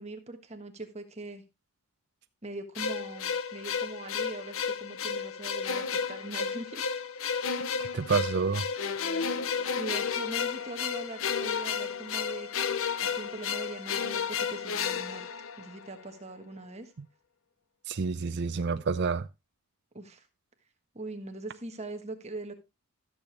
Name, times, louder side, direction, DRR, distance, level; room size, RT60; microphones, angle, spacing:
voice 1, 0.0-1.4 2.4-6.9 9.8-12.5 13.0-15.3 15.6-16.9 19.9-20.2 20.9-22.5, right 2 dB, 30° right, 1.3 m, -41 dB
sound 1, 2.8-16.0, left 6 dB, 65° left, 0.8 m, -32 dB
voice 2, 7.9-8.7 17.9-19.3, right 4 dB, 50° right, 0.5 m, -28 dB
13.5 x 6.9 x 3.3 m
head